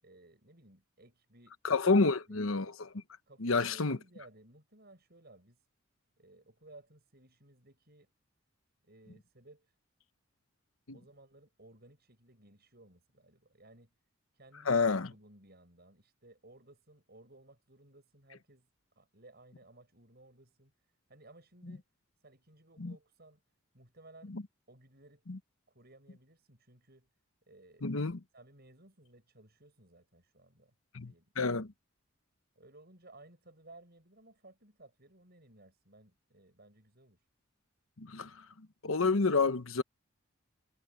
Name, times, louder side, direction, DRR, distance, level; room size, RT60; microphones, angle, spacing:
voice 1, 0.0-1.6 1.9-2.4 3.3-5.7 6.2-8.1 8.8-9.7 10.9-13.9 14.3-14.8 15.1-18.7 19.0-20.7 21.1-21.9 22.2-23.4 23.7-24.4 24.7-25.3 25.7-27.1 27.5-28.0 28.3-30.7 31.0-31.3 32.6-37.2, right 2 dB, 50° right, 7.7 m, -58 dB
voice 2, 1.6-2.9 3.4-4.0 10.9-11.0 14.7-15.1 21.7-21.8 22.8-22.9 24.3-24.4 25.3-25.4 27.8-28.2 30.9-31.7 38.0-39.8, left 4 dB, 80° left, 1.1 m, -29 dB
head